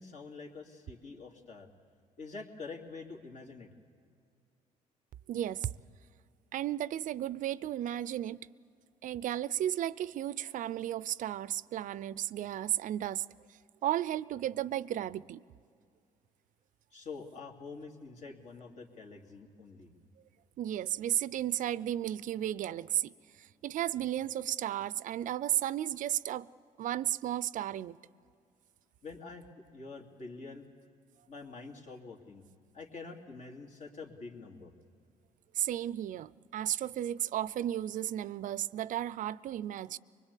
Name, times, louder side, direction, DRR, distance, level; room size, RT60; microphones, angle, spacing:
voice 1, 0.0-1.7 2.2-3.7 16.9-19.9 29.0-29.5 29.7-30.6 31.3-32.4 32.7-34.7, left 4 dB, 55° left, 2.7 m, -46 dB
voice 2, 5.3-5.7 6.5-8.4 9.0-13.3 13.8-15.4 20.6-26.5 26.8-28.0 35.5-40.0, right 12 dB, 60° right, 0.5 m, -34 dB
24.0 x 20.5 x 8.3 m
cardioid pair, 90°, 15 cm